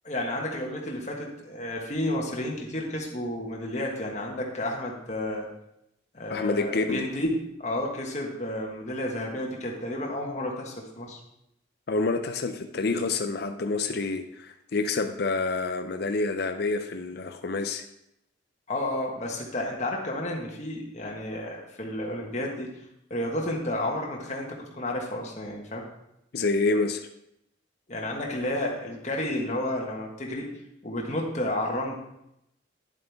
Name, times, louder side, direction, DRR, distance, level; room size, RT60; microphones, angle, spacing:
voice 1, 0.0-5.5 6.1-11.2 18.7-22.8 23.1-25.8 27.9-30.6 30.8-31.9, left 1 dB, 35° left, -1 dB, 1.5 m, -31 dB
voice 2, 6.3-7.1 11.9-17.8 26.3-27.0, left 3 dB, 55° left, 7 dB, 0.5 m, -28 dB
10.0 x 7.6 x 3.5 m, 0.81 s
head